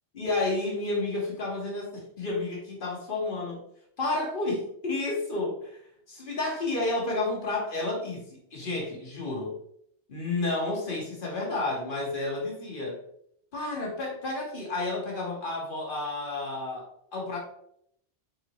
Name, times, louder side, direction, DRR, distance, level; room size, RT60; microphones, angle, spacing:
voice 1, 0.1-3.6 4.0-5.8 6.1-9.6 10.1-13.0 13.5-17.4, left 2 dB, 50° left, -2 dB, 1.4 m, -31 dB
4.0 x 3.9 x 3.0 m, 0.70 s
omnidirectional pair, 1.2 m